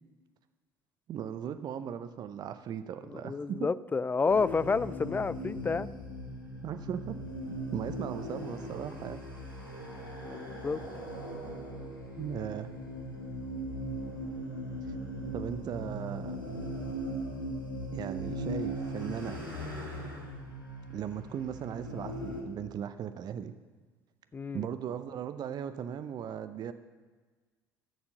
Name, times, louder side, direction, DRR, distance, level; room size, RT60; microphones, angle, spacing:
voice 1, 1.1-3.7 6.6-7.2 7.7-9.2 12.2-12.7 15.3-16.4 17.9-19.4 20.9-23.5 24.5-26.7, right 9 dB, 40° right, 10 dB, 0.6 m, -37 dB
voice 2, 3.1-5.9 10.2-10.8 24.3-24.7, left 4 dB, 15° left, 19 dB, 0.3 m, -30 dB
sound 1, 4.3-22.4, equal, 90° left, 1.7 m, -39 dB
12.0 x 7.1 x 6.5 m, 1.4 s
figure-of-eight pair, 60°, 11 cm